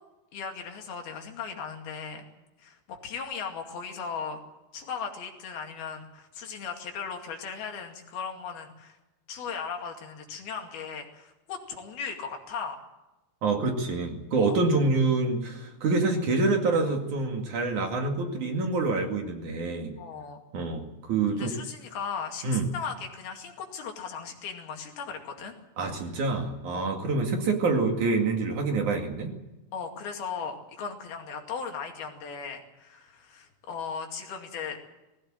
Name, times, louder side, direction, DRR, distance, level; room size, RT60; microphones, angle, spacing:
voice 1, 0.3-2.3 2.6-4.4 4.7-9.0 9.3-12.8 14.4-14.6 20.0-20.4 21.3-25.6 26.7-26.9 29.7-34.8, left 6 dB, 70° left, 3 dB, 4.3 m, -37 dB
voice 2, 13.4-19.9 20.5-21.5 22.4-22.7 25.8-29.3, right 3 dB, 55° right, 3 dB, 3.4 m, -26 dB
20.5 x 17.0 x 8.9 m, 1.0 s
omnidirectional pair, 4.6 m